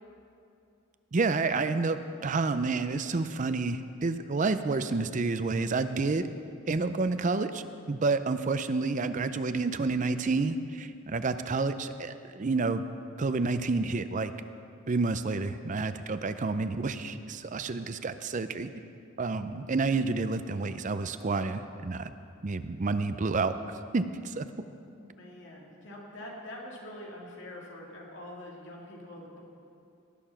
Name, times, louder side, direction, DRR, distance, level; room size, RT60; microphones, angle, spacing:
voice 1, 1.1-6.3 6.7-12.8 13.2-14.3 14.9-18.7 19.2-22.1 22.4-24.5, right 3 dB, 35° right, 11 dB, 0.5 m, -29 dB
voice 2, 24.9-29.4, left 1 dB, 60° left, -2 dB, 2.5 m, -45 dB
18.5 x 6.9 x 5.9 m, 2.5 s
head